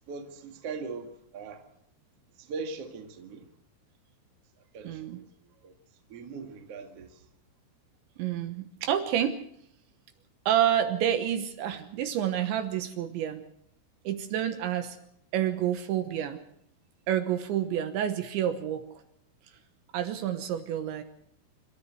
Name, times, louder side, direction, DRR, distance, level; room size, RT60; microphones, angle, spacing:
voice 1, 0.1-1.6 2.4-3.5 4.7-5.2 5.6-5.7 6.1-7.2, right 4 dB, 50° right, 1.8 m, -40 dB
voice 2, 4.8-5.2 8.2-9.4 10.5-13.5 14.0-15.0 15.3-16.4 17.1-18.9 19.9-21.0, right 10 dB, 75° right, 3.1 m, -28 dB
26.5 x 13.5 x 7.8 m
omnidirectional pair, 6.0 m